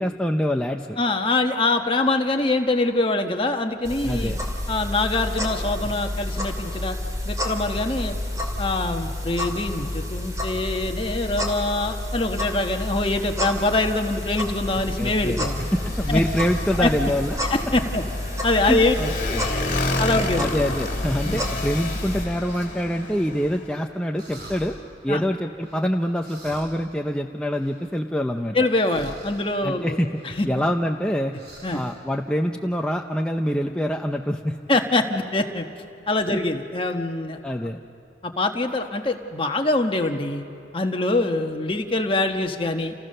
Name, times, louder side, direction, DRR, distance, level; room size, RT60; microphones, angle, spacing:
voice 1, 0.0-1.0 4.0-4.4 15.0-17.4 18.6-19.5 20.4-24.7 25.0-28.6 29.6-30.2 30.5-31.3 31.7-34.6 36.3-36.4 37.4-37.8, equal, 5° left, 2 dB, 0.6 m, -25 dB
voice 2, 1.0-4.4 4.7-7.0 7.2-8.2 8.6-15.6 16.1-16.2 16.8-16.9 17.4-18.0 18.4-18.9 20.0-20.4 21.2-21.4 25.1-25.2 28.5-30.0 30.4-30.5 31.6-31.8 34.7-35.6 36.1-37.4 38.2-40.4 40.7-42.9, left 2 dB, 30° left, 4 dB, 1.4 m, -24 dB
sound 1, 3.8-22.2, left 1 dB, 20° right, 2.8 m, -30 dB
Motorcycle, 13.1-23.7, left 2 dB, 45° left, 2.9 m, -32 dB
sound 2, 19.8-20.7 21.2-23.8 24.2-24.8 25.6-28.2 28.7-29.6 30.1-31.0 31.3-32.1, right 1 dB, 60° right, 4.6 m, -46 dB
29.5 x 29.0 x 6.7 m, 2.6 s
head